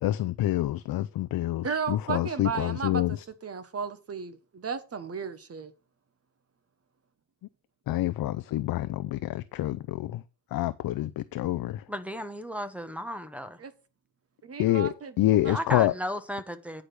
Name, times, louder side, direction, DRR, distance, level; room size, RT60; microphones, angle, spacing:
voice 1, 0.0-3.2 7.9-10.2 10.5-11.8 14.6-15.9, left 14 dB, 55° left, 0.5 m, -27 dB
voice 2, 1.6-3.2 3.4-5.7 13.6-13.7 14.4-15.6, right 6 dB, 35° right, 1.3 m, -34 dB
voice 3, 11.9-13.6 15.5-16.8, equal, 5° right, 1.1 m, -34 dB
9.8 x 5.0 x 6.1 m
cardioid pair, 115°, 43 cm